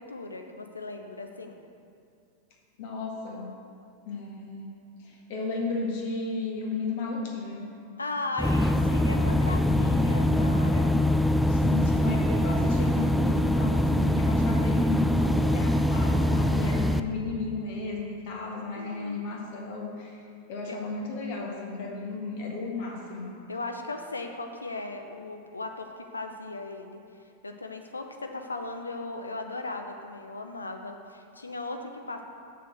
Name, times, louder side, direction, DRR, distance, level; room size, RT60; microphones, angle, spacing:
voice 1, 0.0-1.6 8.0-10.9 18.7-19.2 20.7-20.8 23.5-27.0 27.4-32.2, left 2 dB, 80° left, 5 dB, 0.6 m, -37 dB
voice 2, 2.8-3.5 4.0-4.7 5.0-7.7 11.5-20.2 20.5-23.3, left 3 dB, 50° left, 0 dB, 1.5 m, -34 dB
sound 1, 8.4-17.0, left 1 dB, ahead, 0.3 m, -23 dB
6.7 x 6.4 x 6.0 m, 2.5 s
figure-of-eight pair, 90°, 0 cm